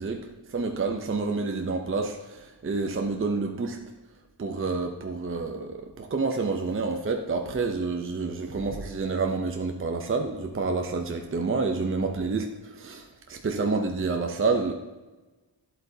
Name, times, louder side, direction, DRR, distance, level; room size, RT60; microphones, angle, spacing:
voice 1, 0.0-3.8 4.4-14.7, right 4 dB, 30° right, 3 dB, 0.7 m, -28 dB
11.0 x 8.0 x 2.8 m, 1.2 s
wide cardioid pair, 125°, 44 cm